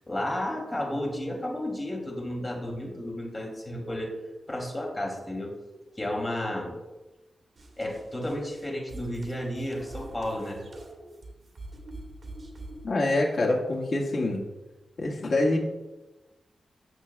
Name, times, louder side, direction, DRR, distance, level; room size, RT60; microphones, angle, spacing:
voice 1, 0.0-4.1 4.5-5.5 6.0-6.7 7.8-10.6, left 1 dB, 25° left, -1 dB, 2.9 m, -32 dB
sound 1, 7.6-12.9, right 2 dB, 45° right, 1.8 m, -44 dB
voice 2, 12.8-14.4 15.0-15.6, left 2 dB, 60° left, -1 dB, 1.8 m, -25 dB
14.0 x 7.3 x 2.4 m, 1.1 s
wide cardioid pair, 120°, 0 cm